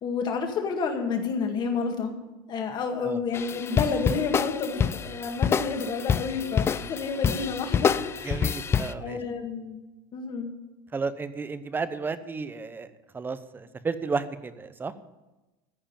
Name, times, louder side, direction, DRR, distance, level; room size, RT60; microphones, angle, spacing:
voice 1, 0.0-2.1 2.5-8.7 8.9-9.8 10.1-10.5, left 5 dB, 40° left, 4 dB, 2.0 m, -30 dB
sound 1, 3.3-8.9, left 7 dB, 20° left, 0.4 m, -27 dB
voice 2, 8.2-9.2 10.9-12.9 13.1-14.9, right 4 dB, 15° right, 13 dB, 0.8 m, -32 dB
14.5 x 4.9 x 8.9 m, 1.1 s
supercardioid pair, 115°, 11 cm